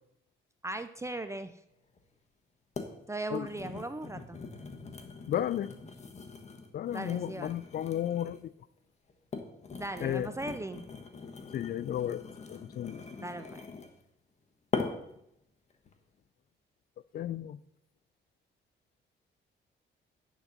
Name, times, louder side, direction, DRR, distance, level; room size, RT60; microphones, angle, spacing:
voice 1, 0.6-1.5 3.1-4.4 6.9-7.5 9.7-10.8 13.2-13.6, right 2 dB, 15° right, 0.5 m, -38 dB
sound 1, 2.0-2.1 2.8-3.0 3.3-8.5 9.1-14.0 14.7-15.2 15.7-15.9, left 4 dB, 35° left, 1.1 m, -41 dB
voice 2, 5.3-5.7 6.7-8.5 10.0-10.4 11.5-13.0 17.1-17.6, left 11 dB, 50° left, 0.4 m, -33 dB
9.5 x 4.0 x 5.9 m
cardioid pair, 90°, 20 cm